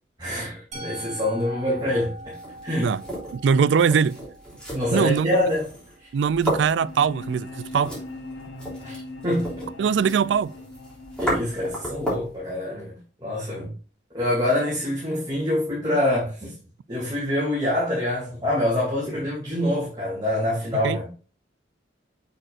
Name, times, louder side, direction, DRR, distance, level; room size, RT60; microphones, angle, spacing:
voice 1, 0.2-2.3 2.6-2.9 4.7-5.7 6.0-6.1 8.8-9.6 11.2-13.7 14.1-16.5 16.9-21.1, left 1 dB, 25° right, 2.5 m, -25 dB
Musical instrument, 0.7-6.6, right 1 dB, 40° right, 2.0 m, -43 dB
sound 1, 2.2-12.4, right 1 dB, 5° left, 3.3 m, -34 dB
voice 2, 3.3-4.2 4.9-5.4 6.1-7.9 9.8-10.5 20.8-21.0, right 6 dB, 75° right, 0.3 m, -21 dB
sound 2, 6.8-12.8, left 2 dB, 75° left, 1.3 m, -40 dB
7.6 x 6.5 x 2.5 m
head